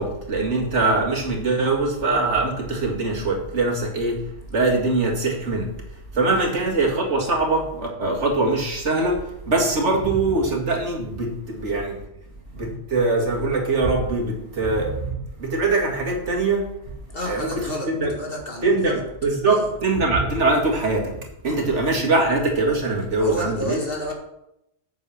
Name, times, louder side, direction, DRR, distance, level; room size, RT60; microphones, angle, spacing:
voice 1, 0.0-4.2 4.5-5.7 6.1-9.2 9.5-12.0 12.5-16.7 17.3-18.1 18.6-21.1 21.4-23.8, right 3 dB, 75° right, 2.4 m, -22 dB
voice 2, 17.1-19.0 19.5-19.7 21.4-21.9 23.2-24.1, equal, 50° left, 2.1 m, -32 dB
8.7 x 6.8 x 6.3 m
omnidirectional pair, 1.2 m